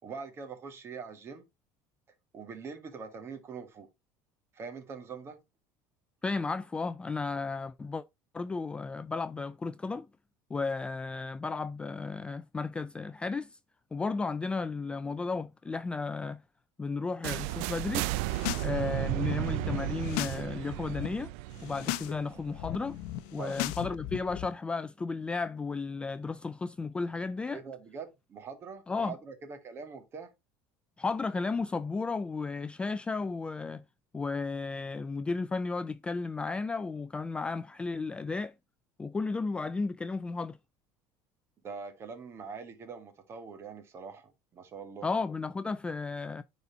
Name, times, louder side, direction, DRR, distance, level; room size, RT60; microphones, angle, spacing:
voice 1, 0.0-1.4 2.3-3.9 4.5-5.4 19.0-19.1 22.1-22.2 23.4-23.6 27.5-30.3 41.6-45.1, right 5 dB, 30° right, 1.9 m, -43 dB
voice 2, 6.2-8.0 8.3-10.1 10.5-13.6 13.9-16.4 16.8-18.1 18.6-21.3 21.6-23.0 23.3-27.6 28.9-29.2 31.0-33.8 34.1-38.5 39.0-40.6 45.0-46.4, left 4 dB, 15° left, 0.3 m, -34 dB
sound 1, 17.2-23.1, right 18 dB, 80° right, 0.3 m, -34 dB
sound 2, 18.1-18.7 19.0-20.4 20.7-21.1 21.5-22.1 22.4-24.5, left 15 dB, 80° left, 0.7 m, -37 dB
9.6 x 4.2 x 4.0 m
cardioid pair, 145°, 8 cm